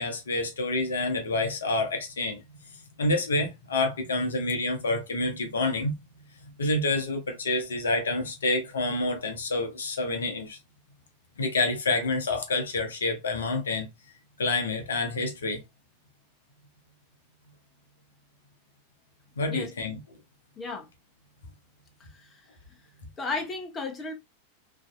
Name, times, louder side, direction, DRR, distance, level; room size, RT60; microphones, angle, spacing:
voice 1, 0.0-2.4 3.0-5.9 6.6-10.6 11.4-13.9 14.4-15.6 19.4-20.0, left 2 dB, 70° left, 0.7 m, -28 dB
voice 2, 20.6-20.9 22.0-22.5 23.2-24.1, left 3 dB, 20° left, 0.6 m, -34 dB
3.1 x 2.6 x 2.3 m
figure-of-eight pair, 90°, 0 cm